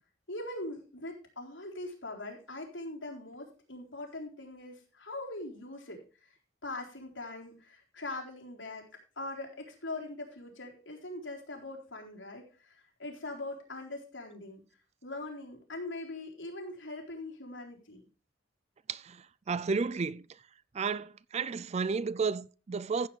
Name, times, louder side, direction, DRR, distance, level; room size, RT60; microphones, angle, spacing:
voice 1, 0.3-6.4 6.6-8.9 9.2-14.6 15.0-18.0, left 2 dB, 75° left, 3.8 m, -42 dB
voice 2, 18.9-20.3 20.7-23.1, right 5 dB, 35° right, 0.4 m, -32 dB
15.0 x 7.9 x 3.3 m
head